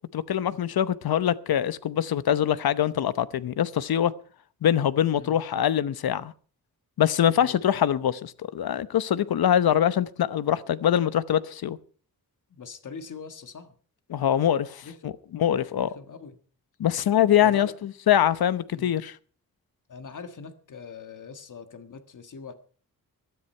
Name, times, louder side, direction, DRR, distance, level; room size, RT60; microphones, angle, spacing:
voice 1, 0.1-4.1 4.6-6.3 7.0-11.8 14.1-15.9 16.8-19.1, left 10 dB, 80° left, 0.9 m, -24 dB
voice 2, 12.5-13.8 14.8-15.2 15.8-16.4 17.4-17.8 18.7-18.9 19.9-22.5, left 5 dB, 55° left, 1.7 m, -42 dB
18.0 x 13.0 x 4.4 m
wide cardioid pair, 130°, 36 cm